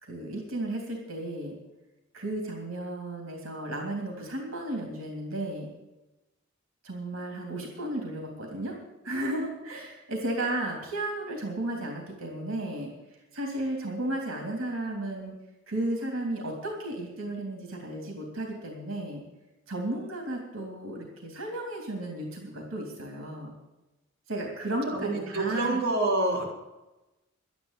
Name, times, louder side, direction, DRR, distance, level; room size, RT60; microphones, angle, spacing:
voice 1, 0.0-1.5 2.1-5.7 6.8-8.8 9.0-12.9 13.3-15.3 15.7-19.2 19.7-23.5 24.3-25.8, right 1 dB, 85° right, 2 dB, 3.3 m, -34 dB
voice 2, 24.9-26.4, right 2 dB, 50° right, -3 dB, 4.2 m, -27 dB
12.0 x 10.5 x 8.4 m, 1.0 s
head